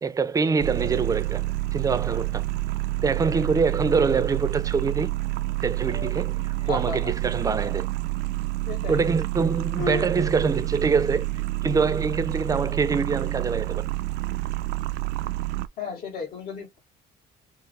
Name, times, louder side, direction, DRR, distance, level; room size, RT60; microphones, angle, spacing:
voice 1, 0.0-2.4 3.0-5.1 5.6-7.9 8.9-11.3 11.6-13.9, right 5 dB, 20° right, 0.5 m, -25 dB
sound 1, 0.6-15.7, right 19 dB, 80° right, 0.4 m, -28 dB
voice 2, 6.6-7.1 8.7-9.0 9.8-10.0 15.8-16.8, left 5 dB, 65° left, 1.6 m, -33 dB
4.5 x 2.0 x 3.3 m
cardioid pair, 110°, 17 cm